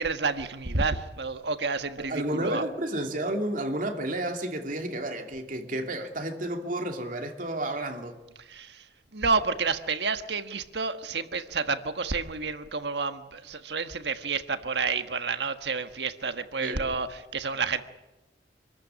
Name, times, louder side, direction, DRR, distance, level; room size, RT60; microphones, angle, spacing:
voice 1, 0.0-2.6 8.4-8.9 9.1-17.8, right 4 dB, 75° right, 9 dB, 1.5 m, -30 dB
voice 2, 2.0-8.2 16.6-16.9, right 1 dB, 50° right, 4 dB, 2.8 m, -31 dB
26.0 x 14.0 x 9.8 m, 1.0 s
head